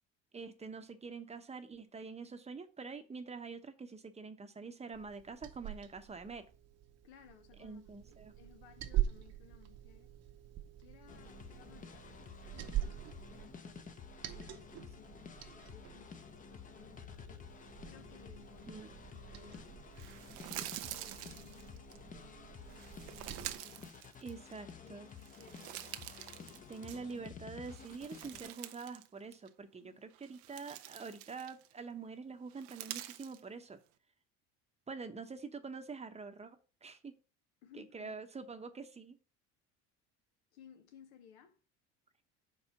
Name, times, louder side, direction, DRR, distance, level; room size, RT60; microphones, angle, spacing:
voice 1, 0.3-6.4 7.6-8.3 18.7-18.9 24.2-25.1 26.7-33.8 34.9-37.1 37.8-39.2, right 4 dB, 20° right, 0.8 m, -46 dB
Liquid, 4.9-23.5, right 12 dB, 50° right, 0.9 m, -44 dB
voice 2, 7.0-7.8 8.1-10.1 10.8-13.9 14.3-16.2 16.5-17.5 17.8-19.7 20.5-23.9 24.8-26.0 29.8-30.0 37.6-38.1 40.5-41.6, left 8 dB, 85° left, 1.1 m, -61 dB
sound 1, 11.1-28.5, left 6 dB, 25° left, 0.7 m, -52 dB
sound 2, 20.0-22.0 22.7-24.7 25.1-27.3 27.6-29.1 29.3-29.5 30.1-31.8 32.5-33.4, right 14 dB, 80° right, 0.7 m, -47 dB
4.7 x 4.6 x 5.7 m
supercardioid pair, 100°, 32 cm